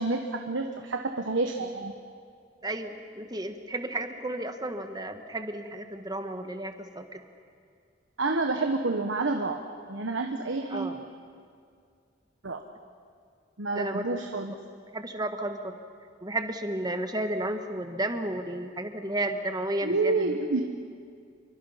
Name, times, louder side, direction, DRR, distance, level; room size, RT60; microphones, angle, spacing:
voice 1, 0.0-1.9 8.2-9.6 9.9-10.9 12.4-12.6 13.6-14.5 19.8-20.6, right 3 dB, 85° right, 5 dB, 1.2 m, -28 dB
voice 2, 2.6-7.2 10.7-11.0 13.7-14.1 14.9-15.7 16.2-20.4, right 1 dB, 20° right, 7 dB, 1.3 m, -32 dB
27.5 x 24.0 x 5.8 m, 2.3 s
head